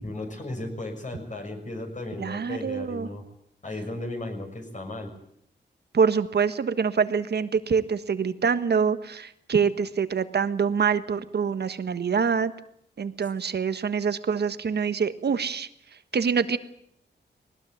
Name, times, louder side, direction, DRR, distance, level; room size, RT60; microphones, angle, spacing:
voice 1, 0.0-3.2 3.6-5.1, left 2 dB, 40° left, 3 dB, 6.3 m, -35 dB
voice 2, 2.2-3.1 5.9-12.5 13.0-15.7 16.1-16.6, right 6 dB, 65° right, 11 dB, 1.4 m, -25 dB
20.0 x 19.0 x 9.4 m, 0.72 s
cardioid pair, 85°, 18 cm